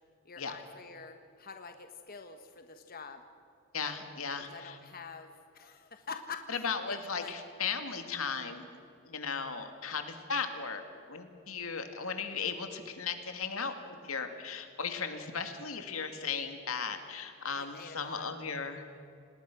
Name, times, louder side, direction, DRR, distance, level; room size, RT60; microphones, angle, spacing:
voice 1, 0.2-3.2 4.5-7.3 17.5-18.3, left 5 dB, 45° left, 7 dB, 1.3 m, -46 dB
voice 2, 3.7-4.8 6.5-8.7 9.0-10.8 11.1-18.8, left 5 dB, 85° left, 7 dB, 2.3 m, -36 dB
27.5 x 19.5 x 6.1 m, 2.6 s
head